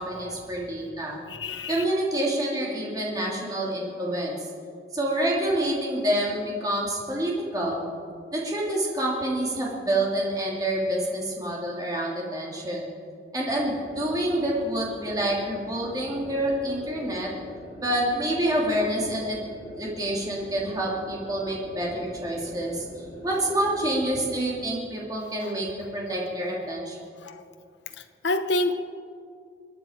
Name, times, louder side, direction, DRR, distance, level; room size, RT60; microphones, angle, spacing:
voice 1, 0.0-1.2 1.7-4.4 4.9-7.8 8.3-12.8 13.3-17.3 17.8-19.4 19.8-22.9 23.2-25.7 25.9-27.1, right 1 dB, 20° right, -4 dB, 2.6 m, -27 dB
voice 2, 1.3-1.7 25.4-25.5 27.2-27.4 28.2-28.7, left 2 dB, 75° left, 9 dB, 0.9 m, -27 dB
sound 1, 13.5-24.5, left 1 dB, 25° left, 4.7 m, -43 dB
25.5 x 9.8 x 5.0 m, 2.3 s
head